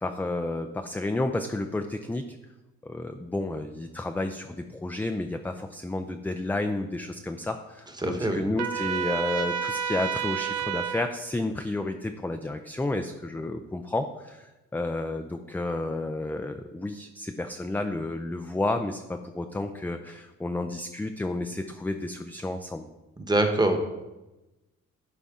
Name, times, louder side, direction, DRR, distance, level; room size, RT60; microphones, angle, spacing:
voice 1, 0.0-2.4 2.8-22.9, left 2 dB, 5° left, 6 dB, 0.4 m, -31 dB
voice 2, 8.0-8.5 23.2-23.8, right 2 dB, 15° right, 5 dB, 1.1 m, -24 dB
Trumpet, 8.6-11.1, right 8 dB, 60° right, 0.7 m, -30 dB
11.0 x 4.1 x 3.6 m, 1.0 s
cardioid pair, 90°, 30 cm